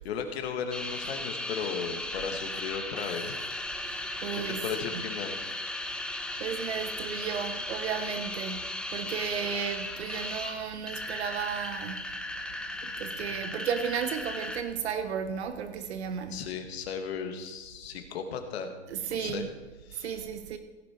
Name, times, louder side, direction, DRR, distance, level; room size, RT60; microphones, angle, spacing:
voice 1, 0.0-3.4 4.3-5.4 16.3-18.8 19.1-19.5 19.8-20.2, left 6 dB, 65° left, 1.7 m, -36 dB
sound 1, 0.7-14.6, left 1 dB, 5° left, 0.7 m, -36 dB
voice 2, 3.8-5.1 6.4-8.7 8.9-12.0 12.8-16.5 18.9-19.5 20.0-20.6, right 7 dB, 70° right, 1.0 m, -34 dB
16.5 x 6.9 x 4.5 m
hypercardioid pair, 120°, 34 cm